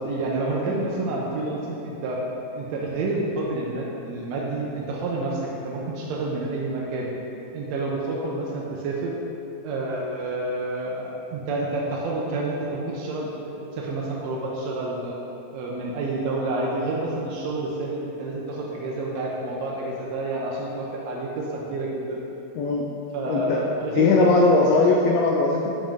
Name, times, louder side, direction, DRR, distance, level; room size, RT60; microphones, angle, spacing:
voice 1, 0.0-2.2 2.5-7.1 7.5-9.2 9.6-15.1 15.5-22.2 23.1-24.4 24.7-25.0, right 2 dB, 75° right, -3 dB, 1.7 m, -29 dB
voice 2, 23.3-23.6 24.0-25.7, left 3 dB, 85° left, -1 dB, 1.5 m, -19 dB
7.4 x 5.4 x 3.6 m, 2.8 s
omnidirectional pair, 3.5 m